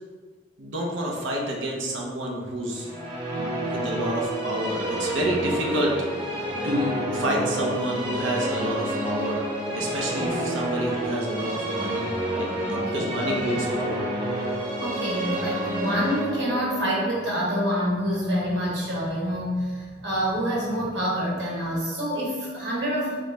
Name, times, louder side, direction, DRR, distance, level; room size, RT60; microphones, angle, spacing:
voice 1, 0.6-2.9 3.3-14.1, equal, 85° right, -2 dB, 0.8 m, -29 dB
sound 1, 2.7-18.8, right 1 dB, 30° right, 0.9 m, -29 dB
voice 2, 9.9-10.5 12.7-13.6 14.8-23.2, equal, 65° right, -5 dB, 1.2 m, -27 dB
3.8 x 3.2 x 3.2 m, 1.5 s
head